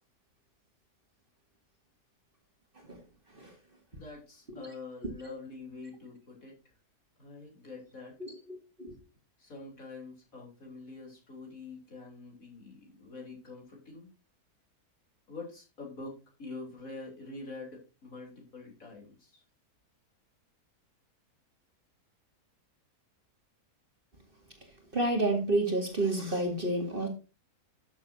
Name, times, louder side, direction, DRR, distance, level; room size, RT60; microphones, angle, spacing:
voice 1, 3.9-6.6 7.2-8.1 9.4-14.1 15.3-19.4, left 3 dB, 60° left, 4.0 m, -46 dB
voice 2, 8.2-9.0 24.9-27.1, right 2 dB, 35° right, 2.5 m, -30 dB
12.5 x 7.4 x 2.8 m
omnidirectional pair, 1.6 m